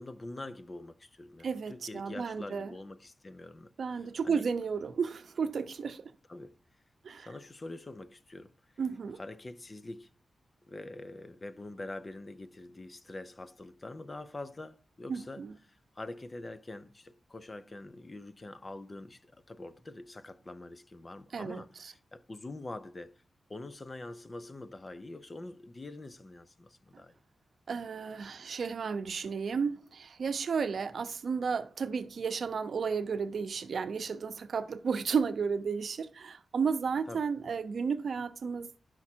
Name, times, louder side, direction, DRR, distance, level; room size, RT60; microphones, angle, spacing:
voice 1, 0.0-4.4 6.3-6.6 7.2-8.5 9.2-10.1 10.7-23.2 23.5-27.2 37.1-37.3, left 2 dB, 25° left, 0.5 m, -45 dB
voice 2, 1.4-2.7 3.8-6.1 7.0-7.3 8.8-9.2 15.1-15.5 21.3-21.6 27.7-38.8, right 5 dB, 60° right, 0.7 m, -33 dB
11.0 x 5.9 x 4.4 m
wide cardioid pair, 175°, 0 cm